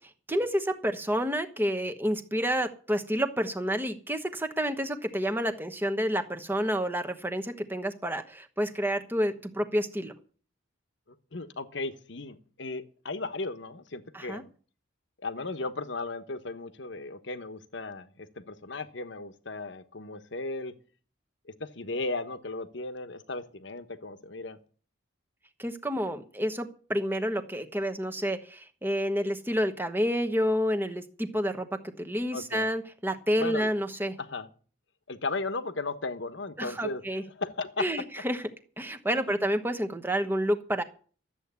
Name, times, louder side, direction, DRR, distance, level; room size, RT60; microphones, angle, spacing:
voice 1, 0.3-10.1 14.1-14.4 25.6-31.7 32.0-34.1 36.6-37.2 37.8-38.4 38.8-40.8, equal, 10° right, 6 dB, 1.1 m, -29 dB
voice 2, 11.3-14.5 15.2-20.7 21.6-24.6 32.3-32.7 33.4-33.7 34.2-34.5 35.1-37.9 39.1-39.2, left 3 dB, 65° left, 10 dB, 1.1 m, -36 dB
13.0 x 8.1 x 8.2 m, 0.41 s
head